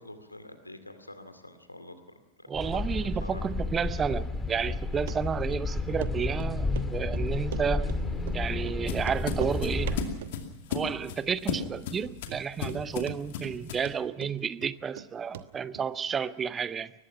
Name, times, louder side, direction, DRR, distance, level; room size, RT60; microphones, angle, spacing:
voice 1, 0.0-1.9 2.4-3.4, left 1 dB, 85° left, 2.3 m, -46 dB
sound 1, 2.5-10.0, left 3 dB, 10° left, 2.2 m, -31 dB
voice 2, 2.5-7.9 8.3-10.0 10.7-16.9, right 7 dB, 20° right, 0.7 m, -31 dB
Run, 5.1-5.2 5.5-5.6 6.0-6.1 6.4-6.9 7.1-8.0 8.3-8.4 8.7-8.8 9.0-9.6 9.9-10.4 10.7-11.2 11.4-11.5 12.0-12.1 12.3-12.8 13.1-13.6 13.9-15.1 15.3-15.5 15.8-15.9, right 10 dB, 60° right, 1.1 m, -39 dB
sound 2, 7.9-13.9, left 6 dB, 55° left, 2.4 m, -36 dB
23.0 x 20.0 x 5.8 m
figure-of-eight pair, 90°, 0 cm